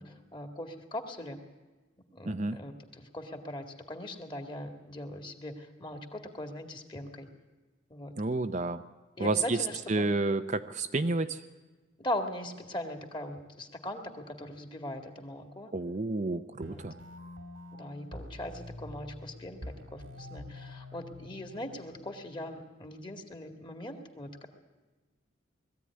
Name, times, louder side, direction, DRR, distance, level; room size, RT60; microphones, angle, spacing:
voice 1, 0.0-1.4 2.1-7.3 7.9-8.1 9.2-10.1 12.0-15.7 16.6-16.8 17.8-24.5, left 1 dB, 25° left, 5 dB, 2.0 m, -40 dB
voice 2, 2.3-2.6 8.2-8.8 9.2-11.4 15.7-16.9, right 3 dB, 40° right, 8 dB, 0.6 m, -30 dB
sound 1, 16.6-22.6, left 1 dB, 90° right, 2.3 m, -47 dB
20.5 x 15.0 x 9.6 m, 1.2 s
head